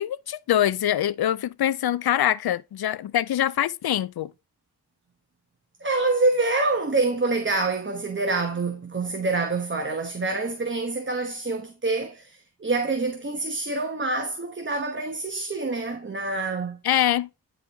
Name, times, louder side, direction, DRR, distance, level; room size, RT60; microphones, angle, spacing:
voice 1, 0.0-4.3 16.8-17.3, left 11 dB, 65° left, 0.5 m, -24 dB
voice 2, 5.8-16.8, right 3 dB, 30° right, 1.1 m, -26 dB
9.9 x 4.2 x 3.5 m
wide cardioid pair, 85°, 41 cm